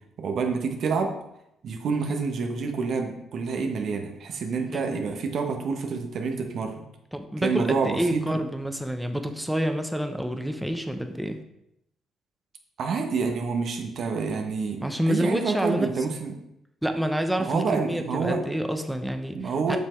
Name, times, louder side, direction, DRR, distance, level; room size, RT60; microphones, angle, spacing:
voice 1, 0.2-1.1 1.6-6.8 7.4-8.2 12.8-16.4 17.4-18.4 19.3-19.8, right 5 dB, 65° right, 4 dB, 1.2 m, -28 dB
voice 2, 7.1-11.4 14.8-15.9 16.8-19.8, equal, 5° right, 6 dB, 0.9 m, -28 dB
7.5 x 6.0 x 4.5 m, 0.81 s
cardioid pair, 90°, 0 cm